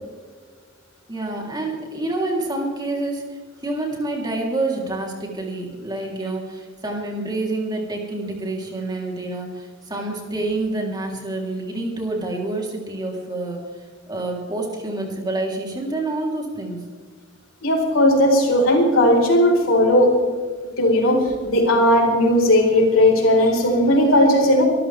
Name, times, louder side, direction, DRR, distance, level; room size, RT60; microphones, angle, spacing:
voice 1, 1.1-3.3 3.6-13.6 14.1-16.8, right 2 dB, 20° right, 0 dB, 3.4 m, -27 dB
voice 2, 17.6-20.2 20.8-24.6, left 1 dB, 90° left, 0 dB, 4.5 m, -16 dB
23.5 x 13.5 x 3.5 m, 1.5 s
head